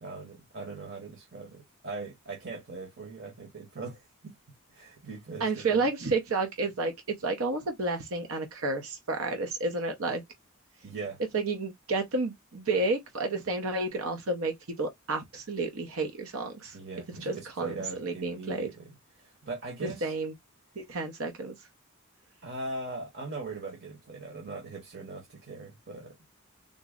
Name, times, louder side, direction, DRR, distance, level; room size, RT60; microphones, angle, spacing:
voice 1, 0.0-4.4 4.7-5.8 10.8-11.2 16.7-20.1 22.4-26.1, right 3 dB, 50° right, 1.2 m, -40 dB
voice 2, 5.4-6.9 7.2-10.2 11.3-16.8 17.1-17.7 18.0-18.7 19.8-20.3 20.8-21.6, right 3 dB, 75° right, 0.7 m, -31 dB
3.8 x 2.0 x 3.6 m
head